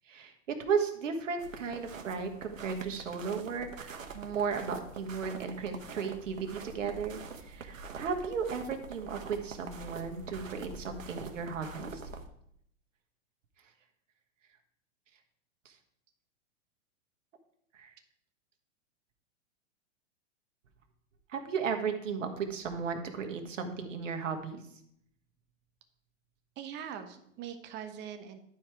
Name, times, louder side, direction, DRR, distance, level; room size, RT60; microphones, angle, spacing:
voice 1, 0.1-12.0 15.6-15.7 17.7-17.9 21.3-24.6, right 6 dB, 75° right, 5 dB, 1.7 m, -35 dB
sound 1, 1.4-12.3, right 4 dB, 90° right, 1.2 m, -45 dB
voice 2, 26.6-28.4, right 8 dB, 30° right, 8 dB, 1.0 m, -42 dB
11.5 x 4.9 x 4.6 m, 0.71 s
hypercardioid pair, 125°, 38 cm